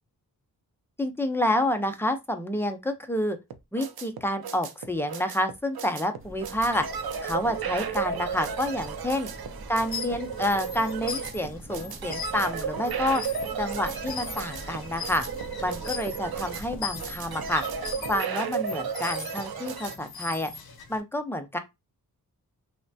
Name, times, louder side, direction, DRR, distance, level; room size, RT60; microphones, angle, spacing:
voice 1, 1.0-3.4 3.7-6.9 7.2-9.3 9.7-13.2 13.6-15.3 15.6-17.6 18.1-20.5 20.9-21.6, left 1 dB, 5° left, 0.4 m, -28 dB
sound 1, 3.5-19.9, right 6 dB, 75° right, 0.5 m, -34 dB
sound 2, 6.2-18.2, right 1 dB, 35° right, 0.8 m, -44 dB
sound 3, 9.7-21.0, left 6 dB, 80° left, 0.7 m, -40 dB
3.1 x 2.1 x 2.6 m
wide cardioid pair, 90°, 37 cm